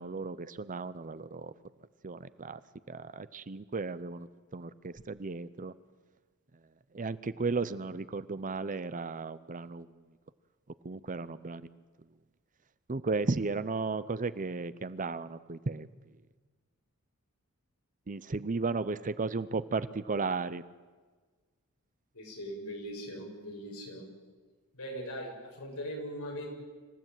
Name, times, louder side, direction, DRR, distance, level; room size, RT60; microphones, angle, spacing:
voice 1, 0.0-1.5 2.0-2.6 2.9-5.7 6.9-9.9 10.8-11.7 12.9-15.9 18.1-20.6, right 3 dB, 35° right, 15 dB, 0.7 m, -34 dB
voice 2, 22.1-24.1 24.7-26.6, equal, 70° left, 1 dB, 7.0 m, -40 dB
26.5 x 16.0 x 9.1 m, 1.4 s
head